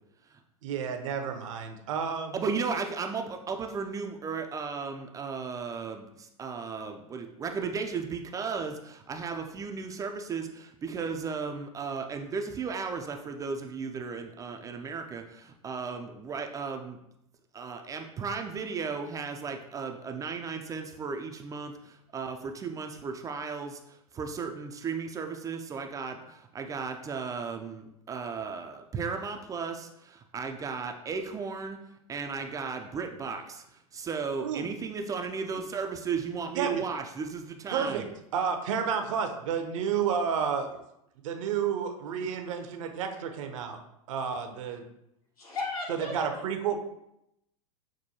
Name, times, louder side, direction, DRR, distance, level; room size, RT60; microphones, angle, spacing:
voice 1, 0.6-2.3 34.4-34.7 36.6-36.8 37.7-38.0 38.3-40.8 41.2-43.8 44.1-44.8 46.1-46.7, right 7 dB, 60° right, 5 dB, 0.6 m, -31 dB
voice 2, 2.3-17.0 17.5-31.8 32.1-33.6 33.9-38.0, right 5 dB, 20° right, 5 dB, 0.3 m, -35 dB
voice 3, 45.4-46.4 46.7-46.8, left 3 dB, 80° left, -4 dB, 1.5 m, -35 dB
6.0 x 2.2 x 2.8 m, 0.81 s
hypercardioid pair, 95°, 19 cm